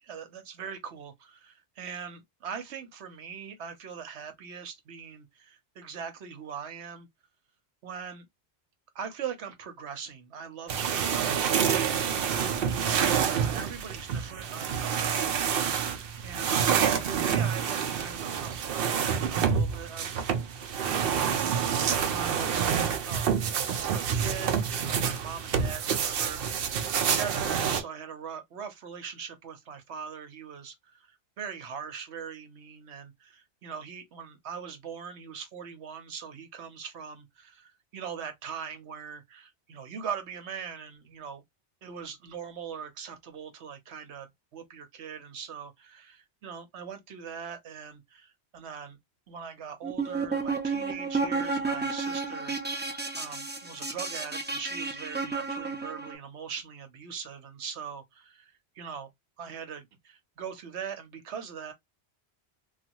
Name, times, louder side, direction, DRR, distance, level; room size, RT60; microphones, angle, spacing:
voice 1, 0.0-7.1 7.8-8.3 8.9-12.3 12.7-20.1 20.4-22.7 23.1-23.4 23.8-41.4 41.8-49.0 49.3-59.1 59.4-61.7, right 7 dB, 85° right, 1.1 m, -41 dB
sound 1, 10.7-27.8, right 7 dB, 65° right, 0.7 m, -28 dB
sound 2, 49.8-56.2, right 4 dB, 15° right, 0.4 m, -32 dB
3.2 x 2.3 x 2.9 m
omnidirectional pair, 1.1 m